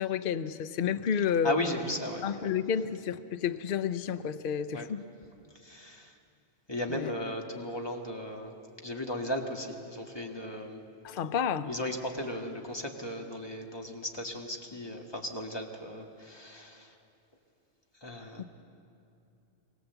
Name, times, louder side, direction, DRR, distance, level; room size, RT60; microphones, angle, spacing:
voice 1, 0.0-1.6 2.2-5.1 6.9-7.1 11.0-11.7, left 8 dB, 55° left, 0.8 m, -30 dB
voice 2, 1.4-2.5 4.7-4.9 5.6-6.1 6.7-8.5 8.8-10.8 11.6-16.9 18.0-18.4, left 1 dB, 20° left, 1.8 m, -36 dB
24.0 x 17.0 x 8.0 m
omnidirectional pair, 1.3 m